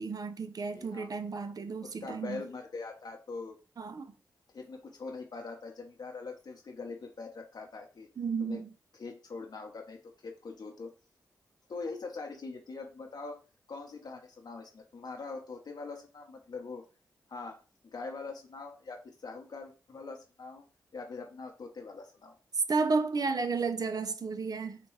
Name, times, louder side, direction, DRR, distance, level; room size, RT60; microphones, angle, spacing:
voice 1, 0.0-2.4 3.8-4.1 8.2-8.7 22.7-24.8, right 4 dB, 55° right, 0.5 m, -32 dB
voice 2, 0.7-1.1 1.8-3.6 4.5-8.1 8.4-8.6 8.9-10.9 11.7-13.4 13.7-16.8 17.3-20.6 20.9-22.4, left 4 dB, 65° left, 0.8 m, -43 dB
4.2 x 2.3 x 3.1 m
cardioid pair, 45°, 8 cm